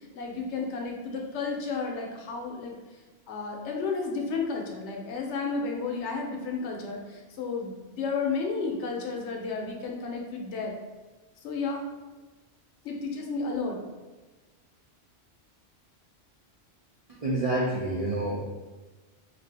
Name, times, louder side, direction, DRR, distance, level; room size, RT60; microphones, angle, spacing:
voice 1, 0.1-2.7 3.3-10.7 11.4-11.8 12.8-13.8, left 4 dB, 75° left, 1 dB, 0.9 m, -32 dB
voice 2, 17.1-18.6, right 2 dB, 50° right, -7 dB, 0.4 m, -28 dB
2.7 x 2.5 x 3.3 m, 1.2 s
omnidirectional pair, 1.2 m